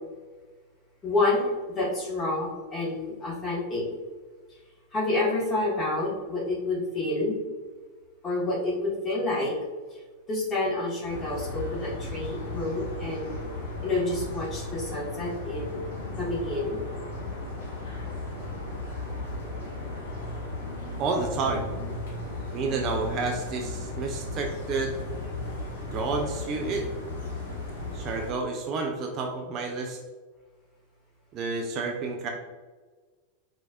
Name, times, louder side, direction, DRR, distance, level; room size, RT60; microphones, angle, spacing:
voice 1, 1.0-3.8 4.9-7.4 8.2-9.6 9.9-10.0 10.3-13.4 13.8-15.8 16.2-16.8, left 2 dB, 20° left, -5 dB, 1.3 m, -28 dB
sound 1, 11.1-28.3, left 2 dB, 60° left, 1.2 m, -35 dB
voice 2, 21.0-21.7 22.5-24.9 25.9-26.9 27.9-30.0 31.3-32.3, right 4 dB, 35° right, 2 dB, 0.4 m, -30 dB
4.5 x 2.5 x 2.3 m, 1.4 s
figure-of-eight pair, 90°, 0 cm